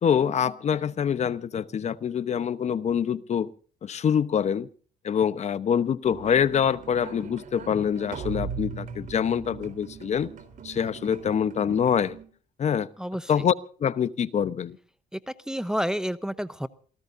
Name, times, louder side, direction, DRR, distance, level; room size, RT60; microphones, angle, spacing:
voice 1, 0.0-3.5 3.8-4.7 5.0-10.3 10.6-12.2 12.6-12.9 13.3-13.5 13.8-14.8, left 8 dB, 40° left, 14 dB, 0.9 m, -25 dB
sound 1, 6.0-12.2, right 6 dB, 50° right, 3.7 m, -39 dB
voice 2, 13.0-13.5 15.1-16.7, equal, 5° right, 13 dB, 0.7 m, -30 dB
28.0 x 17.5 x 2.6 m, 0.42 s
cardioid pair, 110°, 17 cm